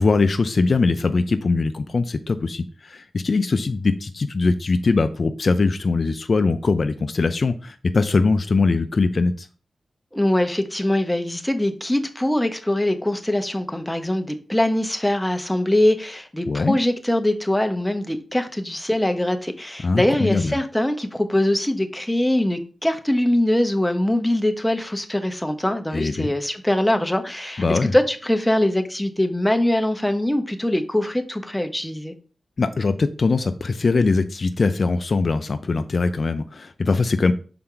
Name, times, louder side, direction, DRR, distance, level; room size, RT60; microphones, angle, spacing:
voice 1, 0.0-9.5 16.5-16.8 19.8-20.6 25.9-26.3 27.6-27.9 32.6-37.3, left 3 dB, 55° left, 0.4 m, -21 dB
voice 2, 10.1-32.1, left 1 dB, 5° left, 0.8 m, -22 dB
5.8 x 4.3 x 3.8 m
wide cardioid pair, 75°, 0 cm